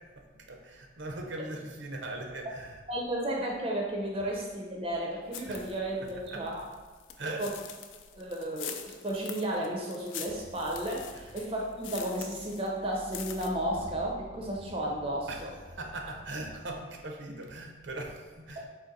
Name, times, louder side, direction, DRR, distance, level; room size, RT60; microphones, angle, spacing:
voice 1, 0.5-2.8 4.2-4.3 5.5-6.7 7.2-7.5 11.1-11.4 15.3-18.7, right 2 dB, 70° right, 2 dB, 0.6 m, -40 dB
voice 2, 2.9-6.7 7.4-7.5 8.2-15.5 18.6-18.7, right 1 dB, 30° right, -1 dB, 0.5 m, -33 dB
sound 1, 5.3-5.8 6.1-12.7 13.0-13.5, left 9 dB, 80° left, 0.4 m, -43 dB
sound 2, 10.3-16.8, equal, 40° left, 0.6 m, -50 dB
3.9 x 2.9 x 4.0 m, 1.4 s
head